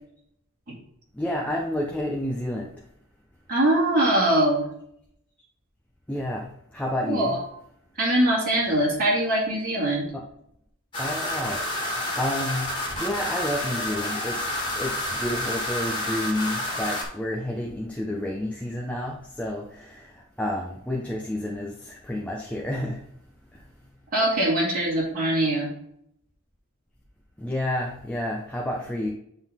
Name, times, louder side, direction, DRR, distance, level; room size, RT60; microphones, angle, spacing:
voice 1, 1.2-2.8 6.1-7.4 10.1-10.2 11.0-12.7 13.0-14.4 14.7-23.0 23.5-23.6 27.4-29.1, left 1 dB, 5° left, -2 dB, 0.9 m, -30 dB
voice 2, 3.5-4.7 7.1-7.4 8.0-10.1 24.1-25.7, right 1 dB, 40° right, -6 dB, 2.4 m, -22 dB
sound 1, 10.9-17.0, left 1 dB, 20° left, 2.3 m, -29 dB
9.6 x 4.0 x 3.6 m, 0.73 s
head